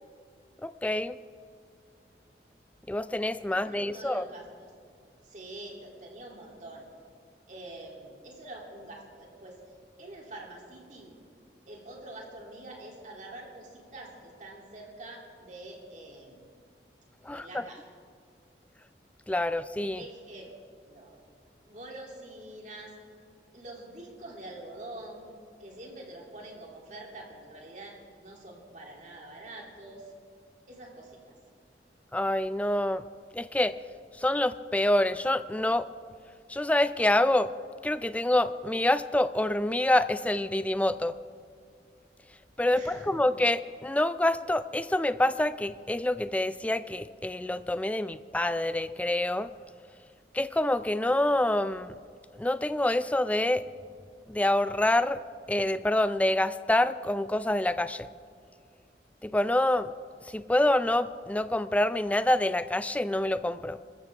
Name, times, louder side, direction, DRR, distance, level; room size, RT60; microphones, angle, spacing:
voice 1, 0.6-1.2 2.9-4.3 17.2-17.6 19.3-20.0 32.1-33.0 33.3-33.8 34.2-35.9 36.5-37.5 37.8-41.1 42.6-49.5 50.3-51.9 52.4-53.7 54.3-55.2 55.5-58.1 59.2-59.9 60.3-63.8, left 1 dB, 10° left, 13 dB, 0.4 m, -26 dB
voice 2, 3.5-4.7 5.2-6.9 7.5-9.6 10.0-11.1 11.7-16.5 17.2-17.8 19.9-20.6 20.8-21.1 21.6-22.9 23.5-25.3 25.6-30.1 30.7-31.4 42.7-43.3, right 1 dB, 45° right, -1 dB, 3.1 m, -45 dB
25.5 x 14.5 x 3.6 m, 2.2 s
head